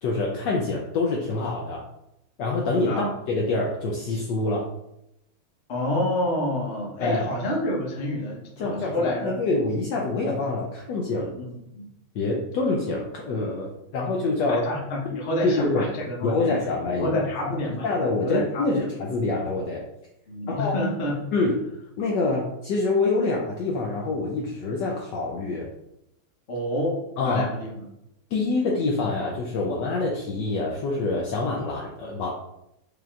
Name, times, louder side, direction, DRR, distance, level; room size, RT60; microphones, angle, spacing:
voice 1, 0.0-1.8 2.4-4.7 7.0-7.3 8.6-11.3 12.1-14.7 15.1-15.9 16.2-17.1 17.4-17.5 17.8-19.8 20.5-20.7 21.3-21.6 22.0-25.7 27.2-27.5 28.3-32.3, left 3 dB, 80° left, -1 dB, 1.0 m, -26 dB
voice 2, 5.7-9.4 11.4-11.5 11.7-11.8 14.5-16.5 17.0-17.9 18.2-18.9 20.3-21.2 26.5-27.8, left 1 dB, 45° left, -2 dB, 0.9 m, -28 dB
4.9 x 3.0 x 2.4 m, 0.85 s
omnidirectional pair, 2.4 m